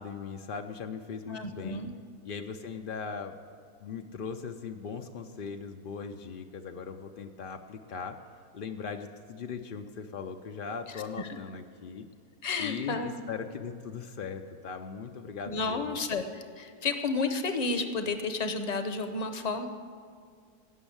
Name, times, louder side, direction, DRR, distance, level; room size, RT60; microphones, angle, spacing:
voice 1, 0.0-1.8 2.2-3.4 3.8-8.2 8.5-12.1 12.6-16.0, left 5 dB, 90° left, 5 dB, 0.4 m, -39 dB
voice 2, 1.3-1.9 12.4-13.1 15.5-19.7, left 4 dB, 40° left, 8 dB, 0.6 m, -31 dB
16.5 x 6.3 x 8.6 m, 2.2 s
omnidirectional pair, 1.7 m